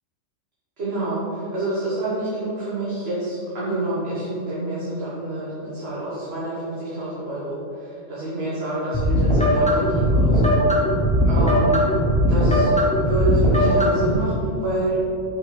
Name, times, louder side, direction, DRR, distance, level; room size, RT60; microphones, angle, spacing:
voice 1, 0.8-10.6 11.2-11.9 12.3-15.0, right 2 dB, 45° right, -8 dB, 1.6 m, -27 dB
sound 1, 8.9-14.1, equal, 5° left, 0.9 m, -19 dB
6.0 x 5.4 x 4.7 m, 2.6 s
omnidirectional pair, 1.5 m